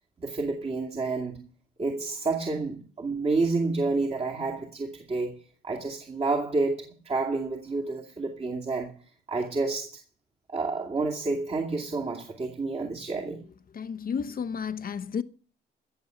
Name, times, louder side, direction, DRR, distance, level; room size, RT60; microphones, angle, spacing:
voice 1, 0.2-1.4 1.8-5.4 5.6-9.0 9.3-10.0 10.5-13.4, right 3 dB, 30° right, 2.4 m, -29 dB
voice 2, 13.7-15.2, left 6 dB, 45° left, 1.0 m, -32 dB
16.5 x 7.1 x 7.9 m
cardioid pair, 90°, 20 cm